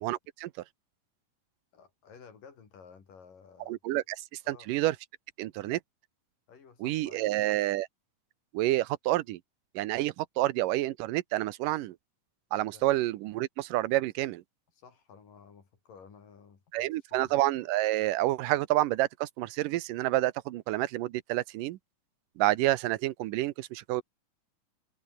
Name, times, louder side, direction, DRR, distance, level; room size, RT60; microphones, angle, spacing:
voice 1, 0.0-0.5 3.7-5.0 5.4-5.8 6.8-7.9 8.5-9.4 9.8-12.0 12.5-14.4 16.7-21.8 22.4-24.0, right 16 dB, 85° right, 2.5 m, -29 dB
voice 2, 1.7-4.1 4.4-4.8 6.5-7.4 12.7-12.9 14.8-17.3, left 6 dB, 85° left, 5.7 m, -54 dB
omnidirectional pair, 3.8 m